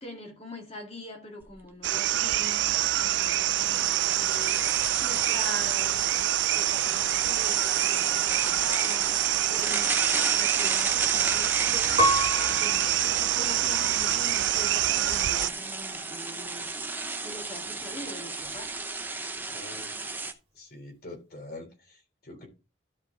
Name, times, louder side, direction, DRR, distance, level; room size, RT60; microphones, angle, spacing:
voice 1, 0.0-4.7 5.0-6.2 6.4-16.8 17.2-18.8, left 1 dB, 30° left, 2.1 m, -43 dB
sound 1, 1.4-1.5 1.8-2.0 2.5-20.3, right 3 dB, 10° right, 0.6 m, -34 dB
sound 2, 1.8-15.5, right 14 dB, 65° right, 0.3 m, -26 dB
Piano, 12.0-14.7 15.3-16.1, right 1 dB, 30° right, 1.7 m, -31 dB
voice 2, 19.5-19.9 20.5-22.5, left 2 dB, 50° left, 3.4 m, -45 dB
12.5 x 4.6 x 3.8 m
head